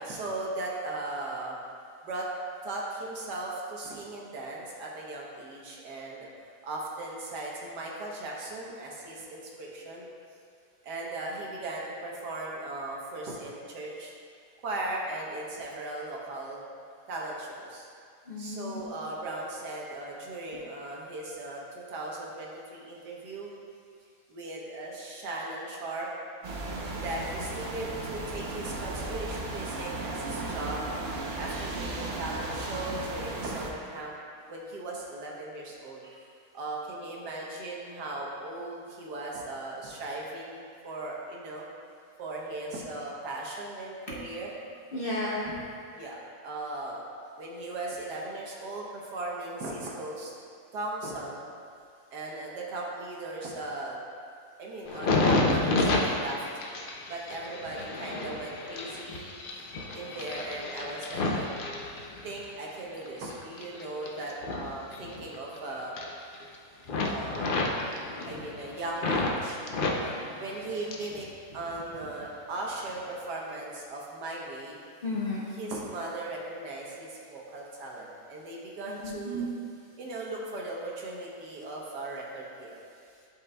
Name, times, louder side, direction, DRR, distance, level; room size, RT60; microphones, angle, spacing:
voice 1, 0.0-1.6 2.0-2.3 2.6-6.3 6.6-10.1 10.8-14.1 14.6-16.6 17.1-17.9 18.4-23.5 24.3-26.1 27.0-30.8 31.4-34.1 34.5-36.0 36.5-41.7 42.2-44.5 45.9-47.0 47.4-50.3 50.7-51.4 52.1-54.0 54.6-56.4 57.1-59.3 59.9-61.5 62.2-66.0 67.1-67.6 68.2-69.6 70.4-71.3 71.5-74.8 75.6-79.5 80.0-82.8, right 2 dB, 85° right, -3 dB, 1.6 m, -38 dB
voice 2, 18.3-18.8 44.9-45.6 67.8-68.0 68.2-68.4 75.0-75.5 78.9-79.5, left 1 dB, 50° left, -6 dB, 0.7 m, -33 dB
sound 1, 26.4-33.7, right 2 dB, 50° right, 0.8 m, -35 dB
sound 2, 54.9-62.5 63.0-65.6 65.8-66.6 66.9-69.4 69.7-71.2 71.5-72.3 72.8-73.0, left 2 dB, 80° left, 0.4 m, -31 dB
11.0 x 5.3 x 2.3 m, 2.3 s
omnidirectional pair, 1.7 m